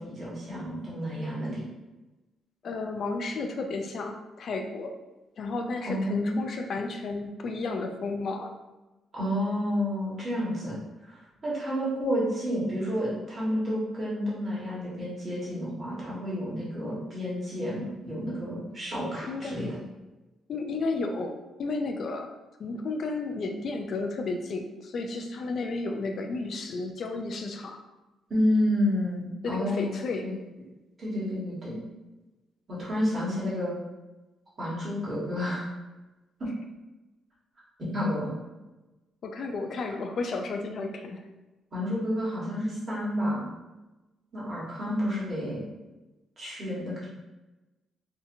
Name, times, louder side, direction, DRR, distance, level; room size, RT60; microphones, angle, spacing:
voice 1, 0.0-1.6 5.8-6.4 9.1-10.8 11.1-19.7 28.3-30.3 31.0-31.8 32.7-33.7 34.6-35.7 36.4-36.5 37.9-38.3 41.7-43.5 44.3-45.6 46.4-47.1, equal, 35° right, -7 dB, 1.4 m, -30 dB
voice 2, 2.6-4.9 5.4-8.5 19.2-19.6 20.5-22.3 22.6-27.8 29.4-30.3 39.2-41.2, left 3 dB, 55° left, 4 dB, 0.3 m, -32 dB
2.7 x 2.4 x 2.6 m, 1.1 s
cardioid pair, 90°, 0 cm